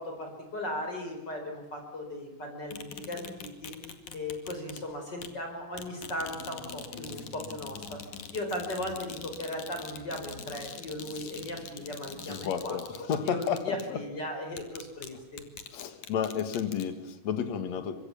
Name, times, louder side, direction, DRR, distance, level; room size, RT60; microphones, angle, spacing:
voice 1, 0.0-3.8 4.1-8.1 8.3-15.5, left 1 dB, 35° left, 4 dB, 5.0 m, -37 dB
sound 1, 2.7-4.8 5.2-5.4 5.7-13.9 14.5-15.1 15.4-16.8, left 6 dB, 80° left, 3.6 m, -44 dB
voice 2, 12.3-14.0 15.7-17.9, left 8 dB, 65° left, 10 dB, 3.1 m, -32 dB
25.0 x 23.5 x 7.1 m, 1.1 s
omnidirectional pair, 3.4 m